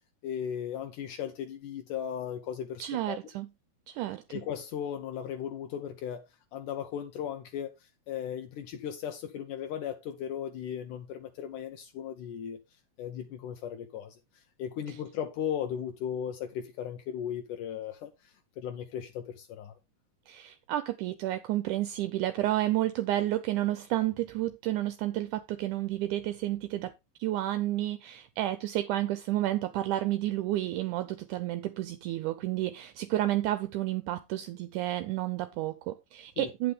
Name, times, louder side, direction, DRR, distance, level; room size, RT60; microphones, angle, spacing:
voice 1, 0.2-3.2 4.3-6.3 6.5-12.6 13.0-14.2 14.6-19.7 36.4-36.5, left 9 dB, 75° left, 2.2 m, -37 dB
voice 2, 2.8-3.5 3.9-4.2 20.3-26.9 27.2-36.7, right 14 dB, 80° right, 1.9 m, -31 dB
8.7 x 7.8 x 3.5 m
omnidirectional pair, 3.8 m